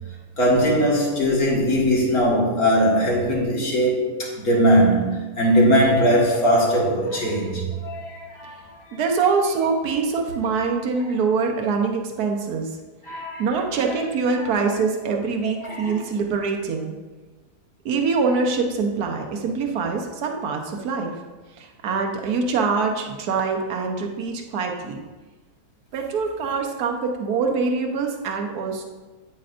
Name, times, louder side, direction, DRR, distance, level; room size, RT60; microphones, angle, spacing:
voice 1, 0.4-8.7 13.0-13.9 14.7-14.8 15.6-16.0, equal, 60° left, -4 dB, 2.2 m, -20 dB
voice 2, 8.9-12.7 13.4-17.0 17.8-21.1 21.6-25.0 25.9-28.8, right 4 dB, 70° right, 2 dB, 1.4 m, -24 dB
9.3 x 8.6 x 2.6 m, 1.3 s
omnidirectional pair, 1.8 m